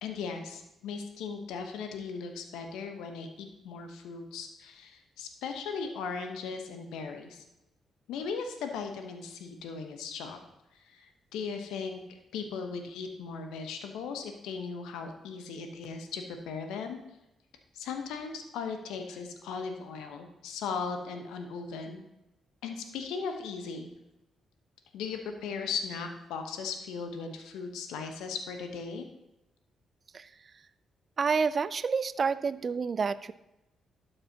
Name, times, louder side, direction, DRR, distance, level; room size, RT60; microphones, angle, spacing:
voice 1, 0.0-7.4 8.1-10.4 10.8-12.0 12.3-17.0 17.7-22.0 22.6-23.9 24.9-29.1, left 5 dB, 75° left, 5 dB, 1.0 m, -38 dB
voice 2, 31.2-33.3, right 5 dB, 50° right, 16 dB, 0.4 m, -29 dB
12.0 x 6.6 x 2.8 m, 0.90 s
hypercardioid pair, 45°, 0 cm